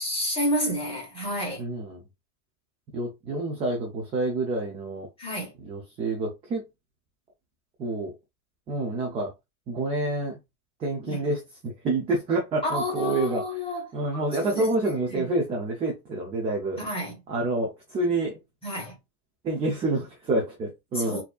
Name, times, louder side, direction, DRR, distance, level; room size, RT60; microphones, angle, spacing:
voice 1, 0.0-1.6 5.2-5.5 11.1-11.2 12.6-13.9 14.1-14.7 15.1-15.2 16.8-17.2 18.6-18.9 20.9-21.2, equal, 10° left, 1.2 m, -30 dB
voice 2, 1.6-2.0 2.9-5.1 5.7-6.6 7.8-8.1 8.7-9.3 9.7-10.4 10.8-13.4 13.9-16.8 17.3-18.3 19.4-21.2, right 2 dB, 15° right, 0.4 m, -28 dB
4.2 x 2.7 x 2.3 m
hypercardioid pair, 130°, 48 cm